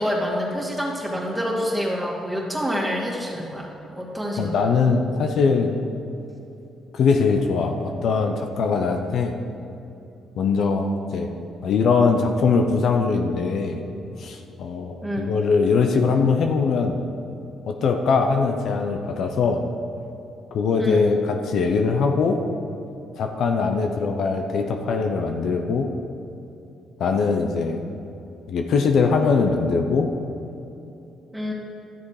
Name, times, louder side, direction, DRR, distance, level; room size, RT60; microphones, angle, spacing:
voice 1, 0.0-4.8 15.0-15.3 20.8-21.0 31.3-31.5, equal, 5° right, -4 dB, 2.5 m, -27 dB
voice 2, 4.4-5.8 6.9-9.4 10.4-11.3 11.6-13.8 14.2-17.0 17.7-19.6 20.5-22.4 23.2-25.9 27.0-27.8 28.5-30.1, left 4 dB, 70° left, 4 dB, 0.8 m, -21 dB
13.0 x 7.1 x 4.9 m, 2.8 s
cardioid pair, 90°, 0 cm